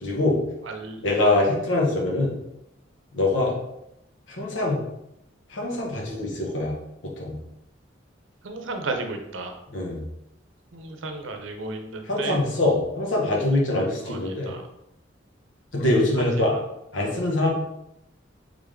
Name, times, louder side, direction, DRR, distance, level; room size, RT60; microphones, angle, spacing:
voice 1, 0.0-0.4 1.0-2.3 3.1-3.6 4.4-4.8 5.5-6.7 7.2-7.3 9.7-10.0 12.1-14.5 15.7-16.6 16.9-17.5, left 2 dB, 75° left, -3 dB, 1.2 m, -23 dB
voice 2, 0.7-1.4 8.4-9.5 10.7-12.4 14.1-14.6 17.0-17.1, right 3 dB, 90° right, 5 dB, 0.7 m, -34 dB
3.6 x 3.5 x 3.7 m, 0.85 s
head